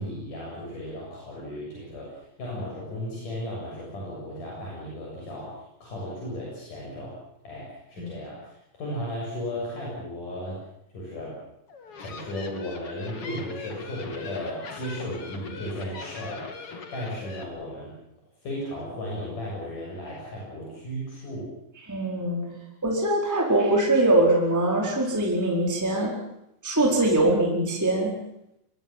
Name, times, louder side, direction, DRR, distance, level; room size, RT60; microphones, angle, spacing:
voice 1, 0.0-7.2 7.4-10.6 10.9-11.4 12.0-16.7 16.9-17.9 18.4-21.5, left 1 dB, 60° left, -4 dB, 8.9 m, -35 dB
sound 1, 11.7-17.4, left 4 dB, 40° left, 3.2 m, -40 dB
voice 2, 21.9-22.5 22.8-26.1 26.6-28.1, right 2 dB, 5° right, -1 dB, 4.2 m, -22 dB
25.5 x 22.5 x 7.5 m, 0.80 s
omnidirectional pair, 4.1 m